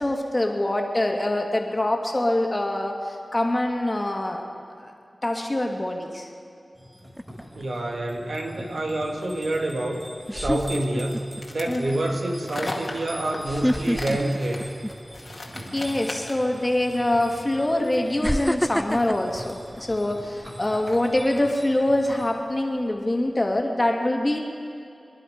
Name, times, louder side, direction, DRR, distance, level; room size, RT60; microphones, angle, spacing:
voice 1, 0.0-4.4 4.8-4.9 5.2-6.3 11.7-12.0 15.7-24.4, left 1 dB, 30° left, 2 dB, 2.2 m, -24 dB
sound 1, 6.7-22.3, equal, 20° right, 4.6 m, -43 dB
sound 2, 7.2-7.6 9.5-9.6 10.3-11.4 11.9-12.1 13.4-15.3 15.6-15.9 16.9-17.0 18.2-20.5 20.9-21.2, equal, 5° left, 0.3 m, -28 dB
voice 2, 7.6-10.1 10.3-14.7, right 1 dB, 80° right, 1 dB, 1.9 m, -27 dB
sound 3, 10.6-16.5, left 2 dB, 55° left, 2.2 m, -37 dB
26.0 x 10.5 x 5.1 m, 2.6 s
cardioid pair, 45°, 0 cm